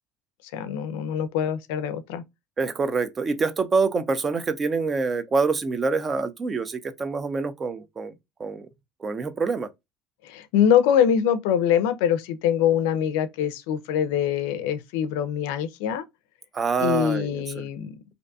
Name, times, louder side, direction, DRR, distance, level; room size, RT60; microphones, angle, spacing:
voice 1, 0.5-2.2 10.2-16.0 16.8-18.0, left 9 dB, 85° left, 0.4 m, -23 dB
voice 2, 2.6-8.1 8.4-8.7 9.0-9.7 16.5-17.7, right 4 dB, 30° right, 0.5 m, -26 dB
2.5 x 2.2 x 2.6 m
supercardioid pair, 90°, 0 cm